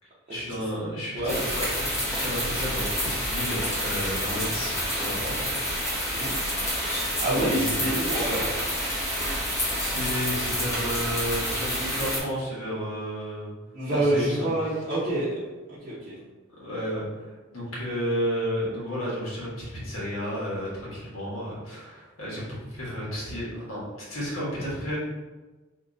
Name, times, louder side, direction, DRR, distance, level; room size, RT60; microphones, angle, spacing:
voice 1, 0.3-6.0 7.3-7.8 8.3-8.4 9.7-13.5 13.9-14.4 16.6-17.0 17.5-25.0, equal, 75° left, -6 dB, 1.4 m, -32 dB
sound 1, 1.3-12.2, equal, 15° left, 0.9 m, -28 dB
voice 2, 7.2-8.5 13.7-16.2, right 1 dB, 35° right, -11 dB, 0.8 m, -27 dB
2.9 x 2.6 x 3.7 m, 1.2 s
head